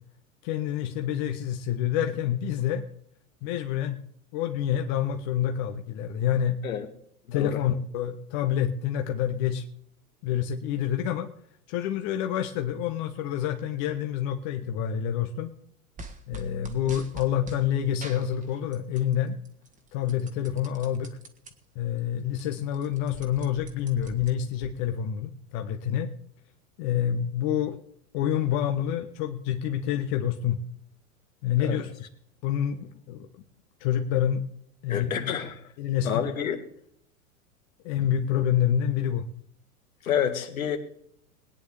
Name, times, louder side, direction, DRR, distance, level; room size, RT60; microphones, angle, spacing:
voice 1, 0.4-2.8 3.4-4.0 4.3-6.6 7.3-9.6 10.2-11.3 11.7-15.5 16.3-19.3 19.9-21.2 21.7-26.1 26.8-27.8 28.1-30.6 31.4-31.9 32.4-33.3 33.8-34.4 34.8-35.3 35.8-36.2 37.8-39.2, left 10 dB, 45° left, 5 dB, 1.3 m, -27 dB
voice 2, 7.3-7.6 31.6-31.8 34.9-35.6 36.0-36.6 40.0-40.8, left 8 dB, 70° left, 5 dB, 2.0 m, -29 dB
sound 1, 16.0-17.6 18.0-19.1 19.5-21.5 22.0-22.1 22.3-24.7, right 2 dB, 20° right, 1.7 m, -44 dB
21.5 x 9.6 x 3.5 m, 0.66 s
figure-of-eight pair, 90°, 43 cm